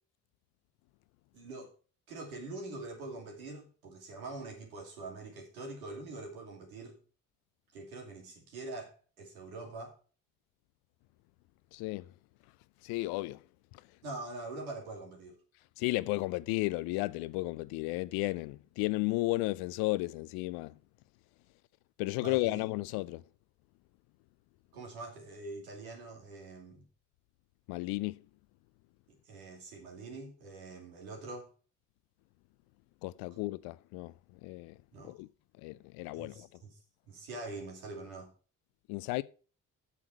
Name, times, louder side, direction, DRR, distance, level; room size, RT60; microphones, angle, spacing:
voice 1, 1.3-1.7 2.1-6.9 7.7-10.0 14.0-15.4 22.2-22.6 24.7-26.9 29.1-31.5 33.3-33.4 34.9-35.1 36.1-36.8 37.1-38.3, right 2 dB, 75° right, 2.7 m, -44 dB
voice 2, 11.7-12.0 12.8-13.4 15.8-20.7 22.0-23.2 27.7-28.2 33.0-34.1 34.4-34.7 35.0-35.3 35.6-36.5 38.9-39.2, left 21 dB, 60° left, 0.6 m, -33 dB
8.3 x 7.4 x 5.9 m
figure-of-eight pair, 45°, 42 cm